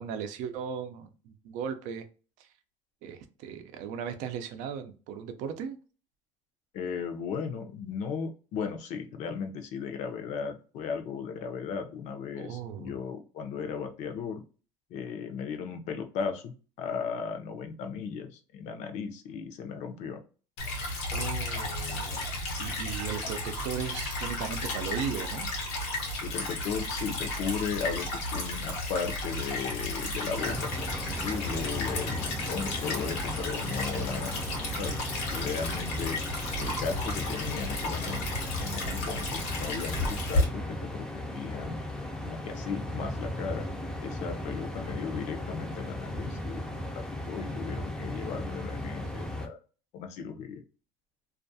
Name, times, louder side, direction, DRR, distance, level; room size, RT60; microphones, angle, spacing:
voice 1, 0.0-2.0 2.4-2.5 3.0-5.8 12.4-12.9 21.1-25.5, right 8 dB, 70° right, 0.5 m, -37 dB
voice 2, 6.7-14.4 14.9-20.2 26.2-30.7 31.2-34.5 34.8-35.0 35.3-36.2 36.6-41.8 42.2-43.7 44.0-49.6 49.9-50.6, left 6 dB, 65° left, 0.6 m, -36 dB
Stream / Trickle dribble, 20.6-40.4, left 1 dB, 90° left, 1.0 m, -33 dB
sound 1, 30.4-49.5, left 1 dB, 5° left, 0.4 m, -37 dB
2.4 x 2.2 x 2.6 m
cardioid pair, 125°, 13 cm